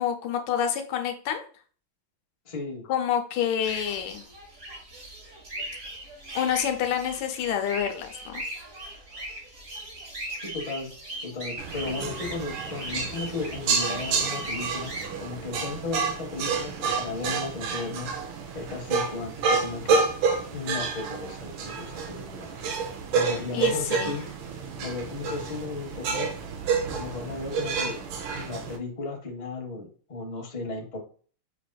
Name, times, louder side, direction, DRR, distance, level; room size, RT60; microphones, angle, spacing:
voice 1, 0.0-1.4 2.9-4.3 6.3-8.4 23.5-24.1, left 9 dB, 80° left, 6 dB, 1.4 m, -28 dB
voice 2, 2.4-2.9 10.4-10.9 11.2-14.9 15.2-18.1 18.5-20.0 20.5-22.5 23.1-24.3 24.8-26.3 26.9-28.0 28.3-31.0, left 3 dB, 65° left, 1 dB, 0.4 m, -35 dB
sound 1, 3.6-15.1, right 1 dB, 40° right, 0.9 m, -39 dB
sound 2, 11.6-28.8, right 5 dB, 75° right, 1.4 m, -29 dB
6.1 x 2.5 x 2.2 m, 0.43 s
omnidirectional pair, 2.3 m